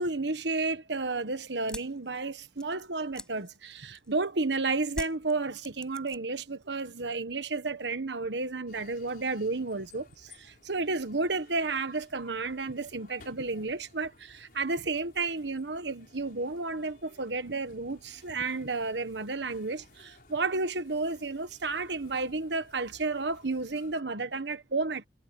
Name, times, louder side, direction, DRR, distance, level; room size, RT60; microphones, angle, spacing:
voice 1, 0.0-25.1, right 3 dB, 80° right, 1.4 m, -32 dB
sound 1, 1.6-4.3 4.9-6.4 6.7-7.3, left 1 dB, 5° left, 6.0 m, -44 dB
sound 2, 8.7-24.0, left 3 dB, 55° left, 5.1 m, -58 dB
head